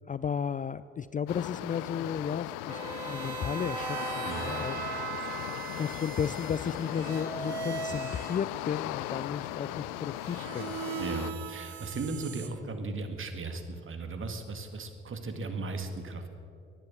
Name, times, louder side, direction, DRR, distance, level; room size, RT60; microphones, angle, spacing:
voice 1, 0.1-2.8 3.1-4.8 5.8-10.7, left 7 dB, 25° left, 15 dB, 0.4 m, -34 dB
sound 1, 1.3-11.3, left 14 dB, 75° left, 0.6 m, -38 dB
sound 2, 2.7-8.4 10.2-12.5, right 6 dB, 85° right, 1.1 m, -38 dB
voice 2, 11.0-16.3, right 3 dB, 40° right, 7 dB, 2.0 m, -37 dB
15.0 x 10.5 x 7.2 m, 2.5 s
hypercardioid pair, 55°, 30 cm